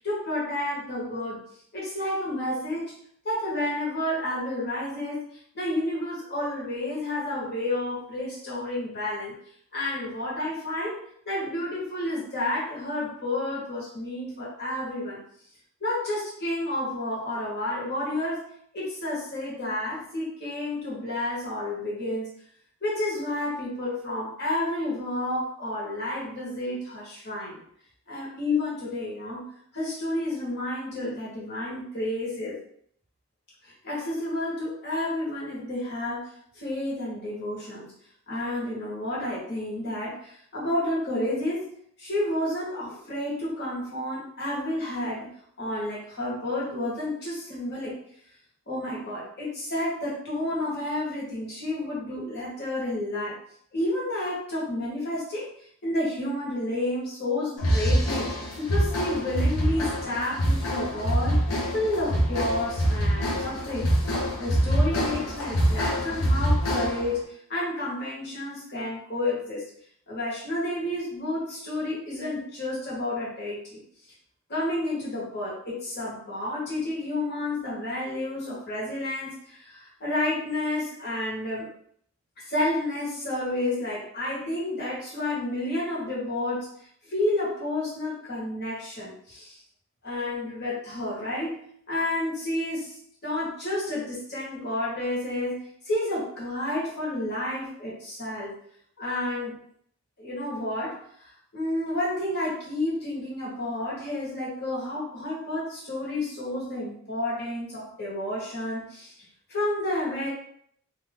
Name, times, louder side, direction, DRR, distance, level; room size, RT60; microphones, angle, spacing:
voice 1, 0.0-1.4 1.7-2.9 3.2-9.3 9.7-11.0 11.2-15.2 15.8-18.5 18.7-22.3 22.8-27.6 28.1-32.6 33.6-37.9 38.3-41.7 42.0-48.0 48.7-53.4 53.7-69.7 70.1-73.8 74.5-81.7 82.4-86.7 87.0-89.6 90.0-91.6 91.9-98.5 99.0-99.6 100.2-109.1 109.5-110.3, left 1 dB, 50° left, -6 dB, 1.4 m, -30 dB
sound 1, 57.6-67.1, equal, 75° left, 0.8 m, -25 dB
2.8 x 2.6 x 3.6 m, 0.66 s
head